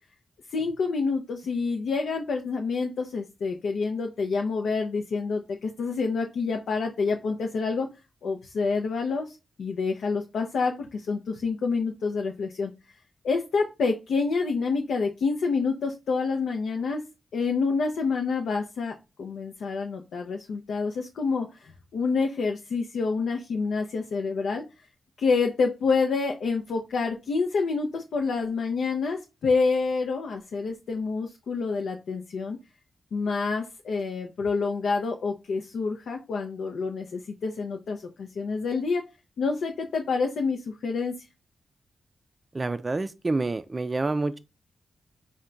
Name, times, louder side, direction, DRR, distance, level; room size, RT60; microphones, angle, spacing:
voice 1, 0.5-7.9 8.2-12.7 13.2-17.0 17.3-24.6 25.2-32.6 33.1-39.0 39.4-41.1, left 4 dB, 85° left, 0.5 m, -28 dB
voice 2, 42.5-44.4, right 3 dB, 30° right, 0.3 m, -28 dB
4.4 x 2.2 x 3.7 m
cardioid pair, 90°, 0 cm